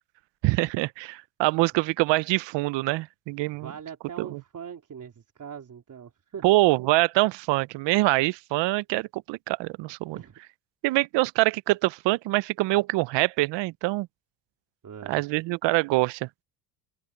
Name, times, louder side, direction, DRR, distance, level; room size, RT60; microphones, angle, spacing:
voice 1, 0.4-3.7 4.2-4.4 6.4-10.2 10.8-14.1 15.1-16.3, right 20 dB, 70° right, 0.6 m, -24 dB
voice 2, 3.5-6.5 10.1-10.4 14.8-15.2, right 7 dB, 40° right, 3.7 m, -41 dB
open air
cardioid pair, 105°, 46 cm